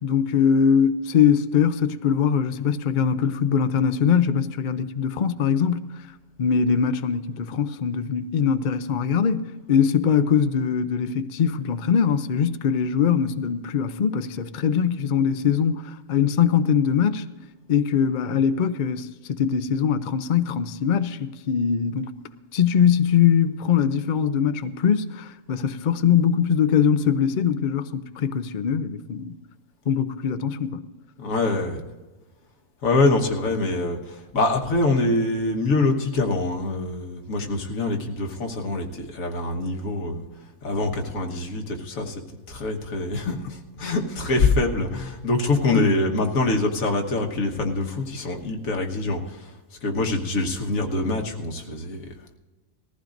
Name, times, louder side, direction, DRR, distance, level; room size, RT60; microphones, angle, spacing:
voice 1, 0.0-5.9 6.4-17.3 17.7-22.1 22.5-29.4 29.9-30.9 45.7-45.9, left 7 dB, 50° left, 0.6 m, -22 dB
voice 2, 31.2-31.8 32.8-40.2 40.6-42.2 42.5-49.5 49.8-52.1, left 2 dB, 85° left, 1.8 m, -24 dB
19.5 x 15.0 x 2.6 m
omnidirectional pair, 1.4 m